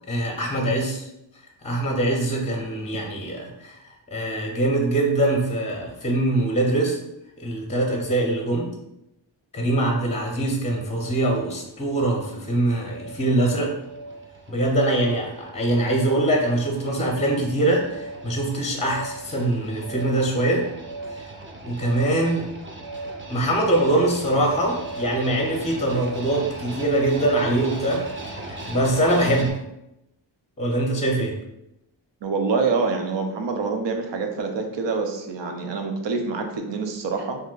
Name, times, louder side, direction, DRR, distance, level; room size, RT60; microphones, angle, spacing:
voice 1, 0.1-1.0 1.6-3.8 4.1-7.0 7.4-8.7 9.5-13.7 14.5-20.6 21.6-22.5 23.3-28.0 28.3-29.6 30.6-31.3, right 1 dB, 15° left, 0 dB, 0.6 m, -23 dB
sound 1, 10.7-29.5, right 2 dB, 30° right, 0.6 m, -37 dB
voice 2, 32.2-37.4, right 4 dB, 75° right, 4 dB, 0.6 m, -26 dB
2.6 x 2.1 x 3.8 m, 0.86 s
cardioid pair, 65°, 44 cm